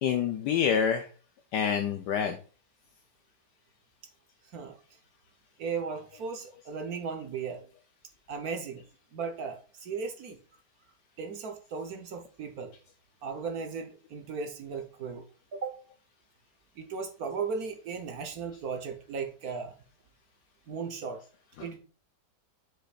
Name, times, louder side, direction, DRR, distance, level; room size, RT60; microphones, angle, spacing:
voice 1, 0.0-1.1 1.5-2.4 21.6-21.7, left 7 dB, 75° left, 6 dB, 1.3 m, -27 dB
voice 2, 5.6-7.7 8.3-8.8 9.1-10.4 11.2-12.7 13.2-15.2 15.5-15.8 16.8-19.7 20.7-21.2 21.6-21.8, right 5 dB, 60° right, 6 dB, 1.5 m, -36 dB
7.7 x 6.4 x 2.5 m, 0.38 s
omnidirectional pair, 1.9 m